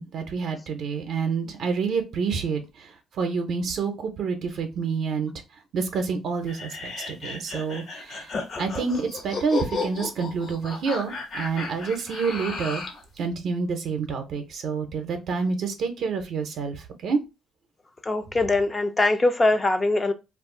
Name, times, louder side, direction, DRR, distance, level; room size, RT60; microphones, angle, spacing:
voice 1, 0.0-5.3 5.7-8.3 8.6-12.8 13.2-17.2, right 5 dB, 70° right, 0.6 m, -28 dB
sound 1, 6.5-13.0, left 4 dB, 55° left, 0.9 m, -34 dB
voice 2, 18.1-20.1, left 2 dB, 25° left, 0.4 m, -22 dB
2.4 x 2.3 x 3.6 m
cardioid pair, 75°, 0 cm